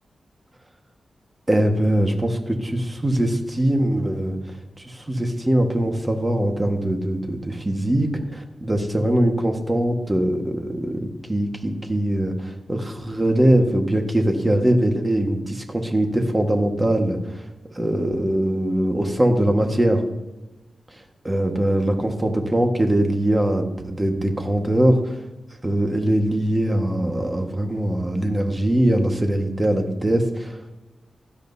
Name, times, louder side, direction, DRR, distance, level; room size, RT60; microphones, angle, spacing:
voice 1, 1.5-4.4 4.8-17.5 17.7-20.0 21.2-25.2 25.6-30.7, right 1 dB, 20° right, 3 dB, 1.5 m, -22 dB
16.0 x 12.0 x 2.7 m, 1.1 s
wide cardioid pair, 105°, 0 cm